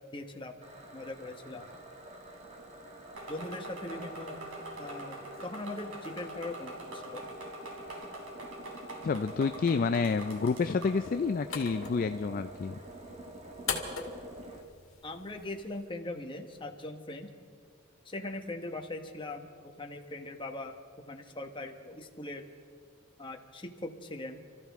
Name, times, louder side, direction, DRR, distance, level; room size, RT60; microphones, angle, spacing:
voice 1, 0.1-0.5 0.9-1.7 3.3-4.4 4.8-7.3 15.0-17.3 18.0-20.8 21.1-22.4 23.2-24.4, left 2 dB, 25° left, 4 dB, 1.1 m, -40 dB
sound 1, 0.6-14.6, right 1 dB, 30° right, 1.5 m, -48 dB
sound 2, 3.1-11.0, right 1 dB, 85° right, 3.6 m, -45 dB
voice 2, 9.0-12.8, left 4 dB, 40° left, 9 dB, 0.3 m, -29 dB
sound 3, 10.8-15.9, left 5 dB, 70° left, 2.3 m, -41 dB
29.0 x 14.0 x 3.6 m, 2.2 s
head